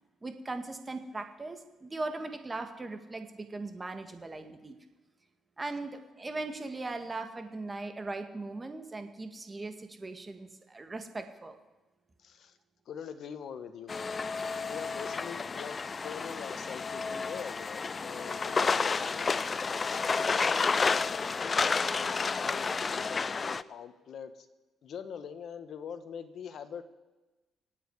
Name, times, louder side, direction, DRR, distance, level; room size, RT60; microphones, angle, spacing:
voice 1, 0.2-4.8 5.6-11.6, right 2 dB, 25° right, 7 dB, 1.9 m, -39 dB
voice 2, 12.2-12.6 12.8-14.3 14.6-19.7 20.3-24.5 24.8-26.8, left 7 dB, 65° left, 9 dB, 1.4 m, -44 dB
sound 1, 13.9-23.6, left 4 dB, 35° left, 0.5 m, -31 dB
26.0 x 8.9 x 4.9 m, 1.1 s
cardioid pair, 90°, 0 cm